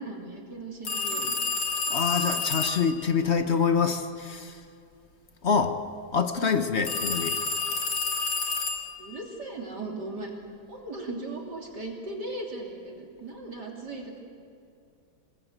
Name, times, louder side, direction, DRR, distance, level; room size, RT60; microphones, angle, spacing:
voice 1, 0.0-1.3 9.0-10.3 10.7-14.2, right 2 dB, 50° right, 0 dB, 3.4 m, -37 dB
sound 1, 0.9-2.9 6.9-9.1, left 4 dB, 70° left, 2.9 m, -29 dB
voice 2, 1.9-4.6 5.4-5.8 6.1-7.4, left 6 dB, 45° left, 8 dB, 1.0 m, -26 dB
27.5 x 20.0 x 8.0 m, 2.5 s
omnidirectional pair, 2.3 m